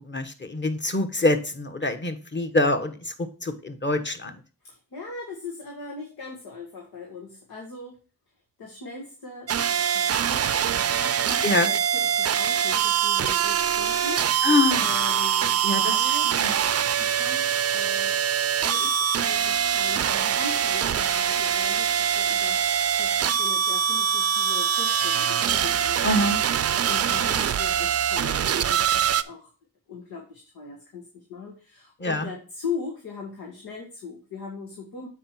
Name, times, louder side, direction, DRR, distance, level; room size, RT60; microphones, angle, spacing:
voice 1, 0.0-4.4 11.4-11.7 14.4-14.9 15.6-16.5 26.0-26.4 32.0-32.3, left 2 dB, 30° left, 7 dB, 1.3 m, -25 dB
voice 2, 4.6-8.0 8.6-14.5 14.8-16.3 17.0-18.2 18.6-26.3 26.8-29.5 29.9-35.1, left 4 dB, 90° left, 0 dB, 1.7 m, -39 dB
sound 1, 9.5-29.2, right 8 dB, 45° right, 0.5 m, -23 dB
7.7 x 4.9 x 4.5 m, 0.36 s
cardioid pair, 65°, 35 cm